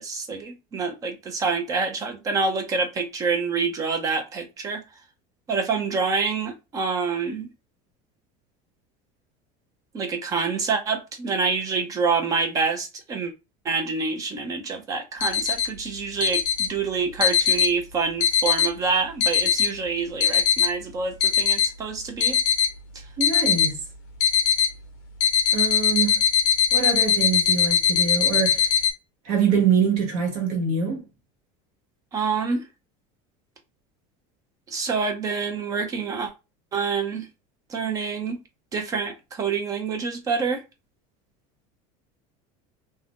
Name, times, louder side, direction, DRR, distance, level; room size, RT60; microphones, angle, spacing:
voice 1, 0.0-4.8 5.5-7.5 9.9-13.3 13.6-22.4 22.9-23.1 32.1-32.7 34.7-36.3 36.7-37.3 37.7-38.4 38.7-40.6, right 4 dB, 20° right, 0.5 m, -27 dB
sound 1, 15.2-15.7 16.2-16.7 17.2-17.7 18.2-18.7 19.2-19.7 20.2-20.7 21.2-21.7 22.2-22.7 23.2-23.7 24.2-24.7 25.2-28.9, left 7 dB, 45° left, 0.7 m, -21 dB
voice 2, 23.2-23.8 25.5-26.2 26.7-28.7 29.2-31.0, right 6 dB, 45° right, 1.1 m, -24 dB
2.7 x 2.4 x 3.5 m
cardioid pair, 175°, 17 cm